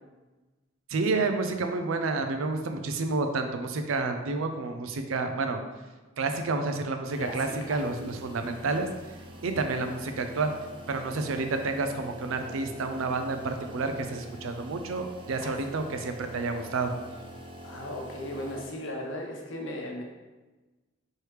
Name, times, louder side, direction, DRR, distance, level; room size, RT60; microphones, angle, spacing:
voice 1, 0.9-5.6 6.2-8.9 9.4-10.5 10.9-16.9, right 3 dB, 80° right, 6 dB, 0.5 m, -30 dB
sound 1, 7.1-18.7, equal, 25° right, 0.4 m, -46 dB
voice 2, 7.2-7.8 15.4-15.6 17.6-20.0, left 1 dB, 65° left, 0 dB, 0.8 m, -37 dB
4.6 x 3.2 x 3.2 m, 1.2 s
head